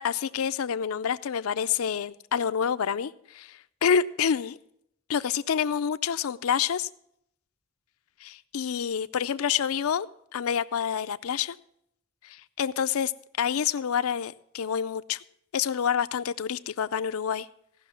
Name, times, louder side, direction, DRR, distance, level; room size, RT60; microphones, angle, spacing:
voice 1, 0.0-4.6 5.1-6.9 8.2-10.1 10.3-11.6 12.2-13.1 13.4-15.2 15.5-17.5, left 7 dB, 75° left, 13 dB, 0.4 m, -28 dB
16.5 x 6.2 x 5.7 m, 0.73 s
head